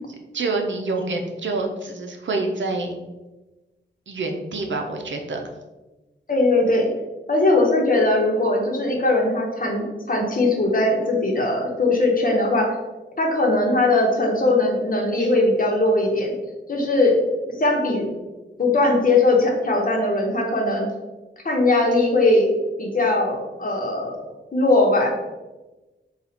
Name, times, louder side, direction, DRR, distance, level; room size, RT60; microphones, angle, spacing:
voice 1, 0.3-3.0 4.1-5.4 15.2-15.3, right 3 dB, 75° right, 2 dB, 0.6 m, -27 dB
voice 2, 6.3-6.9 7.3-12.7 13.2-16.3 16.7-17.2 17.6-18.1 18.6-20.9 21.4-22.5 22.8-24.2 24.5-25.1, left 2 dB, 45° left, 0 dB, 1.0 m, -20 dB
4.1 x 2.4 x 4.2 m, 1.1 s
wide cardioid pair, 90°, 19 cm